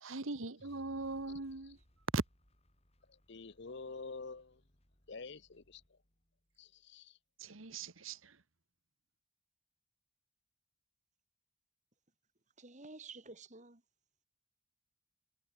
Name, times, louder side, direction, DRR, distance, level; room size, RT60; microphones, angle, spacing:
voice 1, 0.0-1.8 2.1-2.2 7.4-8.4, right 3 dB, 85° right, 1.5 m, -39 dB
sound 1, 0.6-6.8, equal, 30° left, 4.5 m, -67 dB
voice 2, 3.3-4.6 5.1-5.8 6.6-7.1, left 4 dB, 60° left, 0.8 m, -47 dB
voice 3, 12.6-13.8, right 3 dB, 35° right, 2.5 m, -51 dB
head